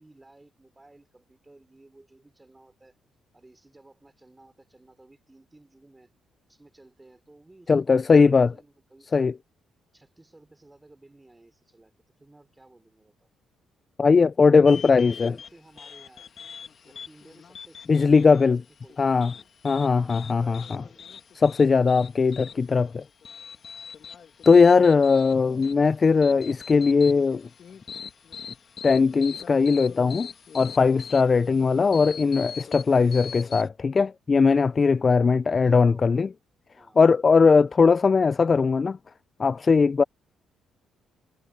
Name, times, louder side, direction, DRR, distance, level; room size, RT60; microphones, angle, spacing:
voice 1, 0.0-2.9 3.3-6.1 6.5-9.3 9.9-11.9 12.2-13.3 14.2-16.3 16.8-19.5 19.9-20.1 20.4-21.0 35.1-36.3 36.8-37.1, right 2 dB, 15° right, 4.3 m, -55 dB
voice 2, 7.7-8.5 9.1-9.3 14.0-15.4 17.9-18.6 19.0-19.3 19.6-20.8 21.4-23.0 24.5-27.5 28.8-30.3 30.5-36.3 37.0-39.0 39.4-40.0, left 5 dB, 35° left, 0.3 m, -19 dB
sound 1, 14.7-33.7, left 7 dB, 55° left, 1.6 m, -43 dB
cardioid pair, 90°, 0 cm